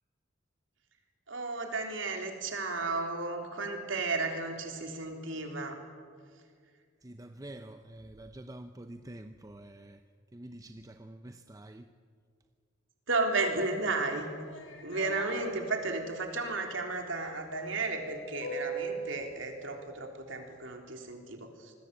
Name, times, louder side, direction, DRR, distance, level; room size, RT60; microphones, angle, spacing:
voice 1, 1.3-5.8 13.1-14.3 14.8-21.7, right 3 dB, 70° right, 3 dB, 3.6 m, -33 dB
voice 2, 7.0-10.0 10.3-11.9, right 1 dB, 20° right, 8 dB, 0.7 m, -47 dB
sound 1, 14.1-15.3 17.5-19.1, right 2 dB, 85° left, 5.0 m, -39 dB
26.5 x 20.5 x 8.3 m, 2.1 s
head